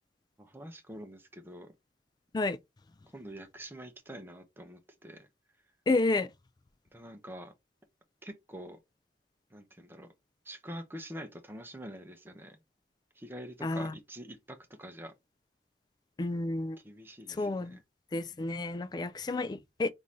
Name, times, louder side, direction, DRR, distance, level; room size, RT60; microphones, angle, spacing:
voice 1, 0.4-1.7 3.1-5.3 6.9-7.5 8.2-8.8 9.5-10.1 10.4-12.6 13.2-15.1 16.8-17.8, equal, 15° right, 0.7 m, -46 dB
voice 2, 5.9-6.3 13.6-13.9 16.2-16.8 17.4-17.8 18.1-19.9, left 2 dB, 25° left, 0.3 m, -30 dB
3.7 x 2.6 x 3.0 m
head